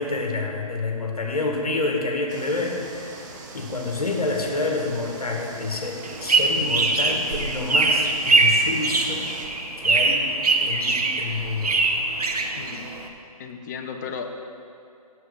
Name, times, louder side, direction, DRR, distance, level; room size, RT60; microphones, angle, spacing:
voice 1, 0.0-9.3 9.8-10.2 10.6-11.8, left 3 dB, 75° left, 1 dB, 1.6 m, -28 dB
sound 1, 2.3-9.5, right 3 dB, 30° right, 0.9 m, -42 dB
sound 2, 6.0-13.1, right 3 dB, 80° right, 1.0 m, -22 dB
voice 2, 12.6-12.9 13.4-14.3, left 6 dB, 30° left, 5 dB, 0.5 m, -34 dB
8.3 x 7.0 x 5.0 m, 2.5 s
figure-of-eight pair, 140°, 20 cm